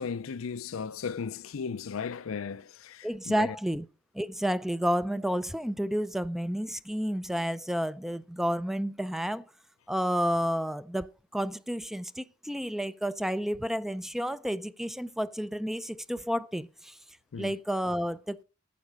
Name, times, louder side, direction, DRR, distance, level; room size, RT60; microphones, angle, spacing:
voice 1, 0.0-3.6 17.3-17.5, left 5 dB, 80° left, 0.5 m, -36 dB
voice 2, 3.0-3.9 4.1-9.5 9.9-17.0 17.4-18.4, equal, ahead, 0.4 m, -31 dB
9.6 x 7.6 x 5.1 m
head